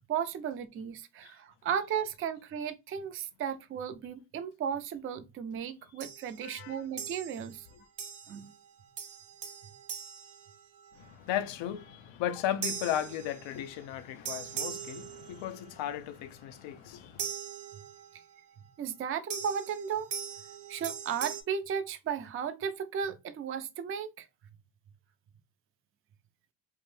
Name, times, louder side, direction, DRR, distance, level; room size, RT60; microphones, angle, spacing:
voice 1, 0.1-7.7 8.3-8.5 18.8-20.1 20.7-24.3, right 8 dB, 30° right, 0.4 m, -35 dB
sound 1, 6.0-6.4 7.0-7.6 8.0-8.6 9.0-11.1 12.6-13.8 14.3-15.7 17.2-18.2 19.3-21.4, right 7 dB, 60° right, 0.7 m, -40 dB
voice 2, 6.4-6.8 7.7-7.8 10.9-17.3, left 11 dB, 75° left, 0.6 m, -36 dB
2.5 x 2.0 x 3.1 m
cardioid pair, 80°, 45 cm